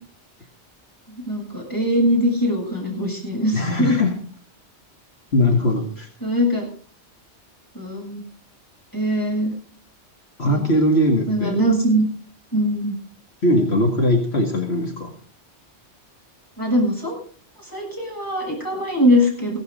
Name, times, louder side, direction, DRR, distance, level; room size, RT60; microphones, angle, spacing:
voice 1, 1.3-4.0 6.2-6.7 7.7-8.2 8.9-9.5 10.4-10.7 11.3-12.0 12.5-13.0 16.6-17.1 17.6-19.6, equal, 15° left, -1 dB, 7.3 m, -21 dB
voice 2, 3.5-4.2 5.3-6.1 10.4-11.6 13.4-15.1, left 1 dB, 65° left, 2 dB, 2.3 m, -20 dB
17.0 x 13.5 x 4.0 m, 0.42 s
omnidirectional pair, 1.2 m